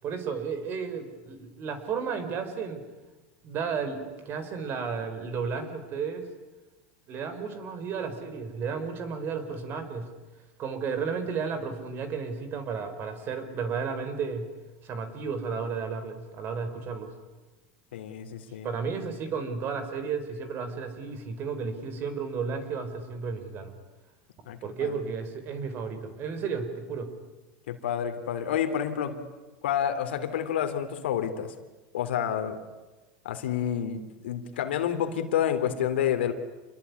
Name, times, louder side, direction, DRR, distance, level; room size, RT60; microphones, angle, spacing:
voice 1, 0.0-2.8 3.4-6.3 7.1-10.1 10.6-14.5 14.8-17.1 18.6-23.7 24.6-27.1, right 5 dB, 40° right, 10 dB, 4.6 m, -33 dB
voice 2, 17.9-18.7 24.4-24.9 27.7-29.2 29.6-31.5 31.9-32.6 33.2-36.3, left 9 dB, 90° left, 8 dB, 3.2 m, -29 dB
28.5 x 21.5 x 9.7 m, 1.2 s
supercardioid pair, 130°, 6 cm